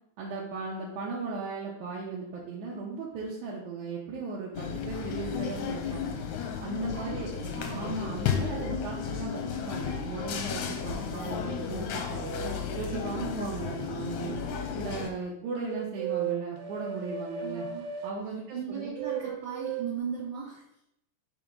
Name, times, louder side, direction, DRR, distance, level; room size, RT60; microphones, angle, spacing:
voice 1, 0.2-6.2 6.6-7.3 7.7-12.3 12.8-14.4 14.8-17.7 18.0-18.9, right 4 dB, 70° right, -5 dB, 2.1 m, -37 dB
sound 1, 4.5-15.1, left 7 dB, 75° left, 1.7 m, -33 dB
voice 2, 6.9-7.9 17.4-17.9 18.5-20.6, right 7 dB, 40° right, -9 dB, 2.5 m, -37 dB
sound 2, 9.3-10.7 11.4-14.7 15.6-18.2 18.8-19.9, right 8 dB, 90° right, 2.3 m, -38 dB
6.1 x 3.5 x 5.2 m, 0.77 s
omnidirectional pair, 4.0 m